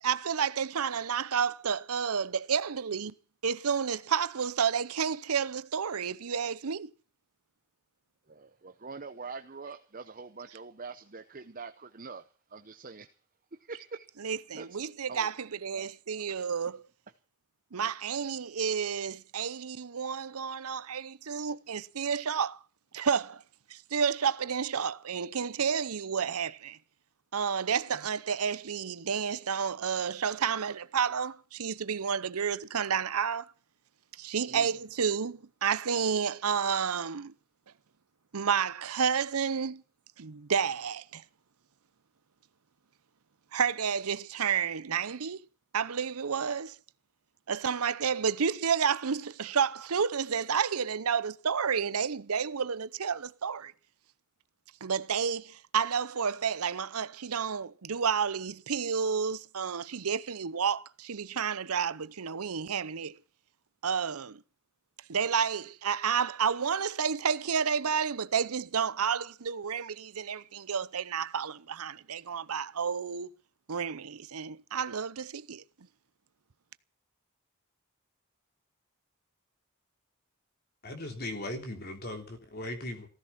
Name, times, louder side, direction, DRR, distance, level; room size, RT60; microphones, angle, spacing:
voice 1, 0.0-3.1 3.4-6.9 14.2-16.9 17.7-22.6 22.9-23.4 23.7-26.8 27.3-33.5 34.2-37.3 38.3-39.8 40.2-41.2 43.5-45.4 45.7-46.8 47.5-53.7 54.8-63.2 63.8-64.4 65.1-73.3 73.7-75.6, right 6 dB, 85° right, 0.7 m, -30 dB
voice 2, 8.3-12.2 12.5-13.1 13.7-14.1 14.5-14.7 15.1-15.3 15.8-15.9 16.1-16.5 34.5-34.7, right 4 dB, 40° right, 0.8 m, -44 dB
voice 3, 80.8-83.1, left 1 dB, 45° left, 3.4 m, -38 dB
16.0 x 14.5 x 5.9 m
head